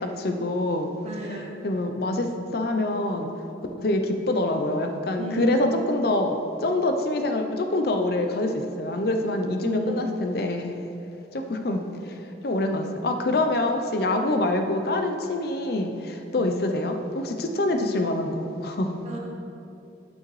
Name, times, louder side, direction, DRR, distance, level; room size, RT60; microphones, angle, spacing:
voice 1, 0.0-0.9 1.2-3.3 3.8-10.7 11.3-12.2 12.4-19.0, left 2 dB, 55° left, 5 dB, 0.6 m, -26 dB
voice 2, 1.0-1.5 5.2-5.7 9.6-10.0 19.1-19.2, right 1 dB, 35° right, -2 dB, 0.7 m, -31 dB
9.2 x 6.3 x 3.2 m, 2.7 s
head